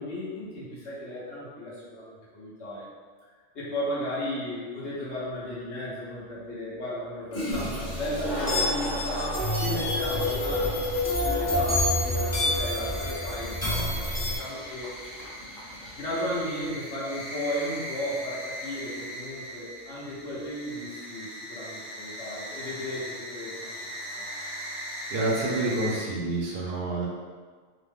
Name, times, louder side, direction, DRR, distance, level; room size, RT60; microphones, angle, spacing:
voice 1, 0.0-2.9 3.5-14.9 15.9-24.3, left 1 dB, 70° left, -8 dB, 1.2 m, -35 dB
Toilet flush, 5.3-5.4 7.0-7.1 7.3-16.7, equal, 40° left, 0.9 m, -37 dB
sound 1, 7.5-14.4, left 1 dB, 20° left, 0.4 m, -28 dB
sound 2, 10.0-26.0, equal, 25° right, 0.6 m, -40 dB
voice 2, 25.1-27.1, right 2 dB, 65° right, -3 dB, 0.7 m, -28 dB
3.0 x 2.1 x 3.5 m, 1.5 s
omnidirectional pair, 1.2 m